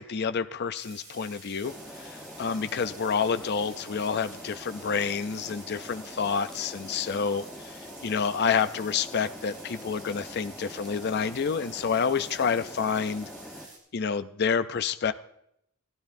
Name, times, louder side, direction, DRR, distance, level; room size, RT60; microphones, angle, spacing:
voice 1, 0.0-13.3 13.9-15.1, left 6 dB, 55° left, 11 dB, 0.5 m, -29 dB
sound 1, 0.7-13.8, right 3 dB, 40° right, 3.4 m, -49 dB
sound 2, 1.6-13.6, left 1 dB, ahead, 1.0 m, -44 dB
17.5 x 13.0 x 2.6 m, 0.73 s
head